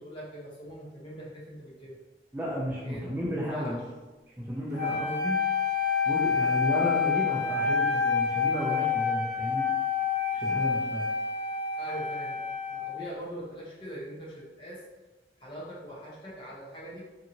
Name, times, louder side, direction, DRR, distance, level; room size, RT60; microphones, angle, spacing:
voice 1, 0.0-2.0 2.8-3.0 3.5-3.8 11.8-14.8 15.4-17.0, equal, 30° left, -6 dB, 0.7 m, -42 dB
voice 2, 2.3-3.8 4.4-5.4 6.1-9.7 10.3-11.0, equal, 10° right, -6 dB, 0.3 m, -33 dB
Wind instrument woodwind instrument, 4.7-13.0, left 6 dB, 65° right, 0.7 m, -28 dB
2.7 x 2.6 x 2.7 m, 1.2 s
head